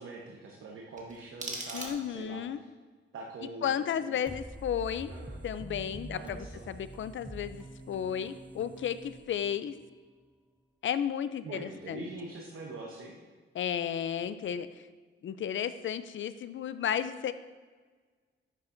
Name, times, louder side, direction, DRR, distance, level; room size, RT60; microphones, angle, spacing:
voice 1, 0.0-2.7 3.1-4.4 5.1-5.4 6.1-6.7 11.4-13.2, right 3 dB, 90° right, -1 dB, 1.0 m, -44 dB
sound 1, 0.9-2.4, right 2 dB, 35° right, 1.7 m, -41 dB
voice 2, 1.7-2.6 3.6-5.1 5.4-9.8 10.8-12.1 13.5-14.7 15.2-17.3, left 9 dB, 70° left, 13 dB, 0.5 m, -33 dB
sound 2, 4.3-9.9, right 1 dB, 5° right, 0.5 m, -45 dB
10.5 x 7.1 x 2.6 m, 1.5 s
cardioid pair, 85°, 21 cm